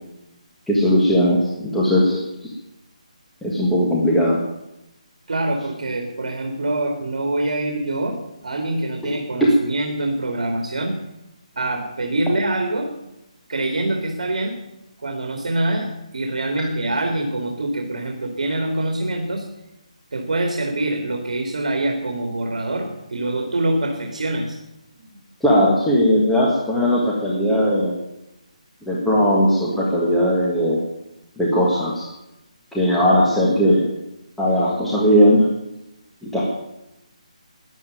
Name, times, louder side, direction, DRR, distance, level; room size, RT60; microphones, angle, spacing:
voice 1, 0.7-2.5 3.4-4.4 9.4-9.5 25.4-27.9 28.9-30.8 31.4-32.0 32.7-33.8 34.4-35.5 36.2-36.4, equal, ahead, -6 dB, 1.6 m, -18 dB
voice 2, 5.3-8.2 8.4-10.9 11.6-12.9 13.5-14.6 15.0-19.4 20.1-24.6 25.0-25.1, right 2 dB, 70° right, 4 dB, 2.6 m, -24 dB
12.5 x 9.9 x 9.2 m, 0.89 s
hypercardioid pair, 170°, 4 cm